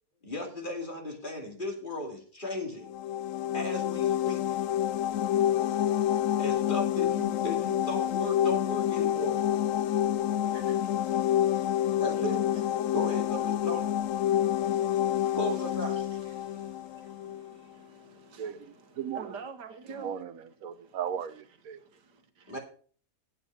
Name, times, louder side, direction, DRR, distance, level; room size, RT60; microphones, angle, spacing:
voice 1, 0.2-2.9 3.5-4.6 6.4-9.4 12.0-12.4 12.9-13.9 15.3-16.0 22.5-22.6, left 1 dB, 30° left, 2.6 m, -36 dB
sound 1, 2.8-17.5, left 11 dB, 65° left, 0.8 m, -28 dB
voice 2, 10.4-13.2 13.5-20.2 20.6-21.0 21.8-22.6, right 5 dB, 90° right, 2.0 m, -51 dB
voice 3, 18.4-19.4 19.9-21.8, right 8 dB, 65° right, 1.1 m, -37 dB
8.8 x 8.1 x 5.8 m
omnidirectional pair, 1.8 m